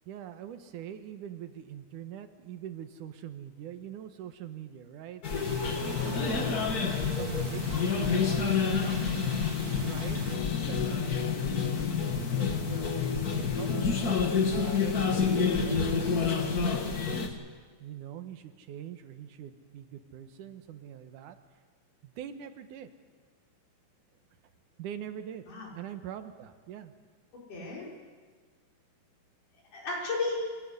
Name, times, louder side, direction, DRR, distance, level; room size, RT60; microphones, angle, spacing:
voice 1, 0.1-5.4 5.8-6.5 7.0-9.1 9.8-11.5 12.0-15.0 15.3-17.3 17.8-21.4 22.0-22.9 24.8-25.4 25.8-26.9, right 10 dB, 80° right, 9 dB, 2.7 m, -43 dB
sound 1, 5.2-17.3, left 5 dB, 40° left, 1.6 m, -28 dB
sound 2, 5.4-10.4, right 6 dB, 65° right, 2.9 m, -44 dB
voice 2, 5.8-6.2 10.4-10.7 25.5-25.7 27.5-27.9 29.7-30.5, left 3 dB, 80° left, -3 dB, 6.6 m, -34 dB
25.5 x 15.0 x 9.7 m, 1.5 s
omnidirectional pair, 3.6 m